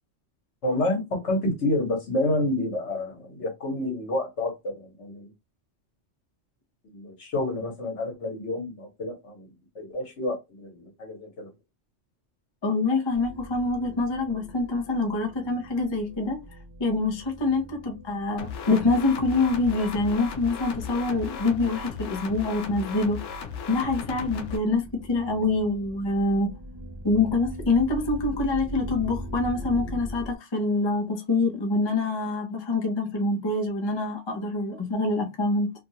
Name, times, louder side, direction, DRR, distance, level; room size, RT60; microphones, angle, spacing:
voice 1, 0.6-5.3 6.8-9.5 9.7-11.5, left 1 dB, 65° left, 1.5 m, -29 dB
voice 2, 12.6-16.4 16.8-23.2 23.7-26.5 27.0-35.7, left 3 dB, 30° left, 0.5 m, -25 dB
sound 1, 13.1-30.4, equal, 40° right, 0.3 m, -42 dB
sound 2, 18.4-24.6, left 6 dB, 80° left, 1.0 m, -36 dB
2.9 x 2.4 x 2.8 m
omnidirectional pair, 1.3 m